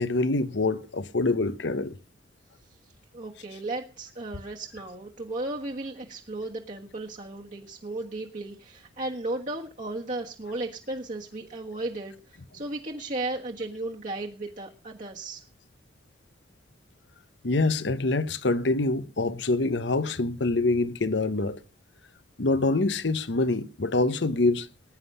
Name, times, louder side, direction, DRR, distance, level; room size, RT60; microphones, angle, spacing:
voice 1, 0.0-1.9 17.4-21.6 22.4-24.7, left 2 dB, 75° left, 0.9 m, -25 dB
voice 2, 2.8-15.4, right 2 dB, 45° right, 1.4 m, -35 dB
19.5 x 9.9 x 5.4 m
head